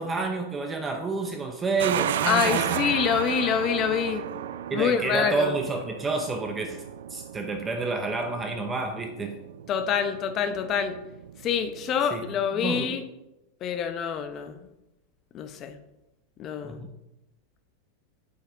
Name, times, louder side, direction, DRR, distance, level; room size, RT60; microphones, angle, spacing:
voice 1, 0.0-2.8 4.7-6.8 7.1-9.4 12.1-12.2 12.6-13.0 16.6-16.9, right 3 dB, 15° right, 4 dB, 0.5 m, -29 dB
sound 1, 1.8-12.5, right 10 dB, 80° right, 0.4 m, -34 dB
voice 2, 2.3-4.2 4.7-5.5 9.7-11.0 11.4-13.0 13.6-14.5 15.3-15.8 16.4-16.8, left 7 dB, 30° left, 9 dB, 0.7 m, -26 dB
7.6 x 5.6 x 3.8 m, 0.95 s
supercardioid pair, 150°, 0 cm